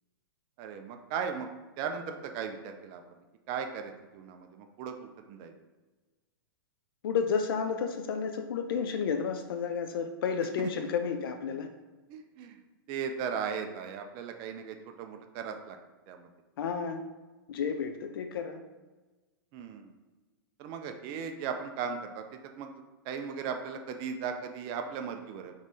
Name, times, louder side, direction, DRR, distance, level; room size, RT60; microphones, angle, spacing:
voice 1, 0.6-1.5 1.8-3.0 3.5-5.5 12.1-12.6 12.9-15.8 16.1-16.3 19.5-19.9 20.6-25.5, right 6 dB, 40° right, 5 dB, 0.4 m, -37 dB
voice 2, 7.0-11.7 16.6-17.0 17.5-18.6, left 6 dB, 75° left, 7 dB, 0.4 m, -31 dB
3.5 x 3.1 x 4.0 m, 1.2 s
hypercardioid pair, 120°, 12 cm